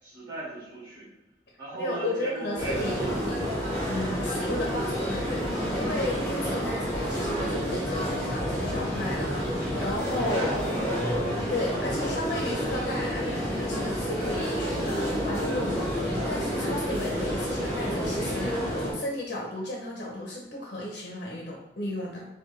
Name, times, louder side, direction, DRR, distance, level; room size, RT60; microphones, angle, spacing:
voice 1, 0.0-1.1 1.6-3.7 10.2-10.9, right 2 dB, 25° right, -10 dB, 1.5 m, -37 dB
voice 2, 1.8-3.3 3.9-10.6 11.5-22.3, left 1 dB, 50° left, -2 dB, 0.8 m, -34 dB
sound 1, 2.6-18.9, equal, 20° left, 1.4 m, -29 dB
5.7 x 2.3 x 3.1 m, 0.96 s
head